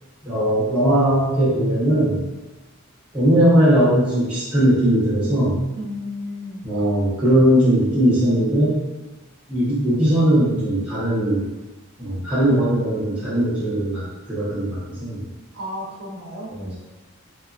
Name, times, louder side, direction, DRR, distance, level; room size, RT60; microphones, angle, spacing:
voice 1, 0.2-2.2 3.1-5.6 6.6-8.8 9.5-11.5 12.0-15.3 16.5-16.8, right 1 dB, 5° right, -10 dB, 0.6 m, -19 dB
voice 2, 5.7-6.7 15.5-16.8, left 1 dB, 55° right, -6 dB, 0.8 m, -33 dB
2.8 x 2.4 x 2.2 m, 1.1 s
head